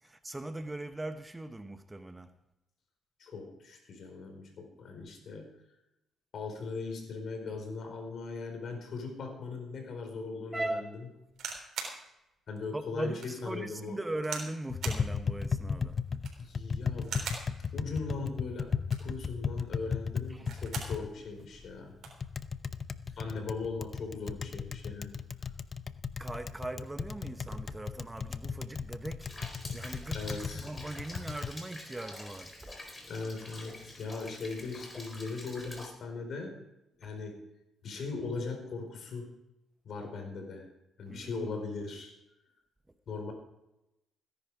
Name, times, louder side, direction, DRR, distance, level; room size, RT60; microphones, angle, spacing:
voice 1, 0.0-2.3 10.5-10.9 12.7-16.0 20.3-20.5 26.2-32.7 37.0-37.1 41.1-41.5, right 2 dB, 15° right, 1.0 m, -39 dB
voice 2, 3.2-5.5 6.3-10.9 12.5-14.0 16.4-17.2 17.7-18.7 19.0-22.0 23.2-25.2 30.1-30.7 33.1-36.6 37.0-37.4 37.8-39.3 39.8-40.6 41.0-42.1 43.1-43.3, left 4 dB, 60° left, 4.7 m, -39 dB
sound 1, 11.3-12.0 12.6-12.7 13.2-13.3 14.2-14.5 14.8-15.1 16.1-16.5 17.0-17.5 18.7-19.2 20.3-21.0 21.4-21.5 21.7-22.2 23.1-23.3, right 6 dB, 70° right, 3.5 m, -40 dB
Tap, 14.7-31.5, left 5 dB, 45° left, 0.7 m, -36 dB
Rain, 29.2-35.9, left 1 dB, 20° left, 4.1 m, -47 dB
17.5 x 10.5 x 4.9 m
supercardioid pair, 75°, 0 cm